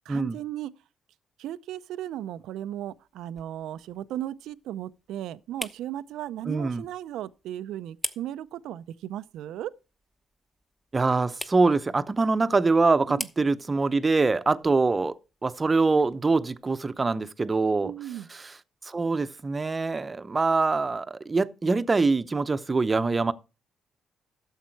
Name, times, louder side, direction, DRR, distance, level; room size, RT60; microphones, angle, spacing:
voice 1, 0.1-0.7 1.4-9.7 13.1-13.3 17.8-18.3, right 12 dB, 85° right, 0.5 m, -36 dB
sound 1, 2.0-16.8, equal, ahead, 1.0 m, -45 dB
voice 2, 6.5-6.8 10.9-15.1 15.4-17.9 18.4-18.5 18.8-23.3, right 3 dB, 25° right, 0.8 m, -24 dB
12.5 x 7.3 x 4.6 m
cardioid pair, 90°, 0 cm